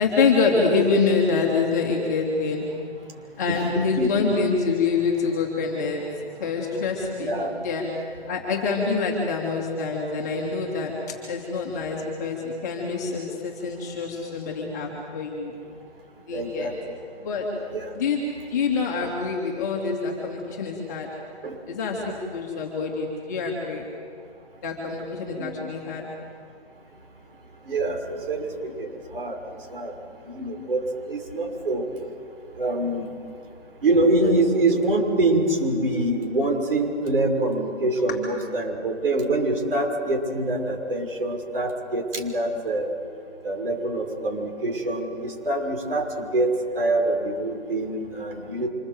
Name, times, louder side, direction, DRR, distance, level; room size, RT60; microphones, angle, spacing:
voice 1, 0.0-7.9 8.3-15.5 16.2-16.7 17.2-17.5 17.9-18.2 18.5-21.1 21.7-23.8 24.6-26.0, left 4 dB, 15° left, -2 dB, 2.6 m, -26 dB
voice 2, 3.5-4.1 7.2-7.5 16.3-16.7 17.7-17.9 21.4-21.6 25.3-25.5 27.7-28.9 29.1-29.4 29.7-29.9 30.3-31.8 32.6-33.1 33.8-42.9 43.4-48.7, right 2 dB, 55° right, 2 dB, 6.2 m, -25 dB
27.0 x 26.5 x 8.0 m, 2.3 s
hypercardioid pair, 180°, 33 cm